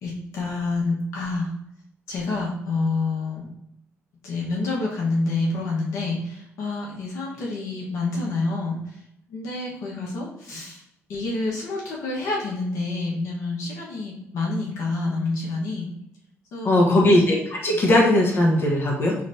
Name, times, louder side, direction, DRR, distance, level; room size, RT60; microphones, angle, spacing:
voice 1, 0.0-1.5 2.1-3.5 4.2-9.0 9.3-10.8 11.1-15.9 16.5-17.2, left 3 dB, 80° left, -3 dB, 1.2 m, -28 dB
voice 2, 16.6-17.4 17.6-19.1, left 1 dB, 50° left, -2 dB, 1.1 m, -18 dB
5.1 x 3.3 x 2.7 m, 0.78 s
cardioid pair, 95°, 5 cm